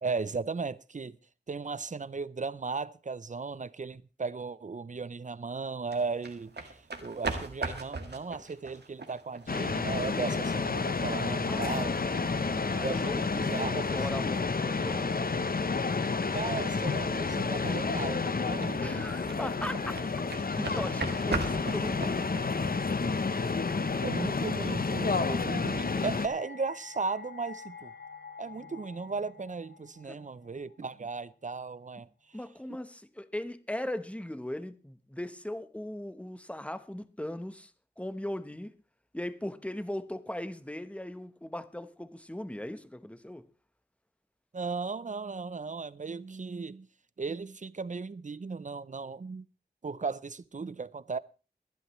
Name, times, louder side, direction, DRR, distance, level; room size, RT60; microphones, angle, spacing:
voice 1, 0.0-1.2 1.5-11.9 12.8-13.9 16.3-19.1 24.0-27.9 28.4-32.4 44.5-46.9 47.2-49.5 49.8-51.2, right 4 dB, 45° right, 0.6 m, -36 dB
sound 1, 5.9-23.8, right 3 dB, 80° right, 1.8 m, -41 dB
sound 2, 9.5-26.3, left 4 dB, 60° left, 0.8 m, -30 dB
voice 2, 11.5-15.4 18.8-20.0 20.6-22.3 30.1-30.2 32.3-37.7 38.0-38.7 39.1-43.4, left 1 dB, 5° left, 1.0 m, -38 dB
sound 3, 24.3-31.2, left 5 dB, 80° left, 1.0 m, -49 dB
22.0 x 11.5 x 3.1 m
wide cardioid pair, 70°, 17 cm